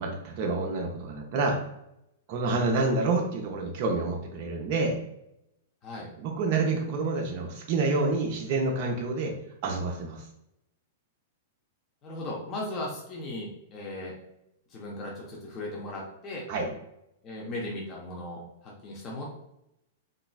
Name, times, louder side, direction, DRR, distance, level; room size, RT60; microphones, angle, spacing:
voice 1, 0.0-1.6 2.3-5.0 6.2-9.3 9.6-10.2 16.5-16.7, right 3 dB, 45° right, 1 dB, 0.5 m, -28 dB
voice 2, 12.0-14.1 14.7-16.4 17.2-19.3, left 1 dB, 30° left, -3 dB, 0.7 m, -37 dB
3.0 x 2.6 x 2.2 m, 0.82 s
figure-of-eight pair, 105°, 0 cm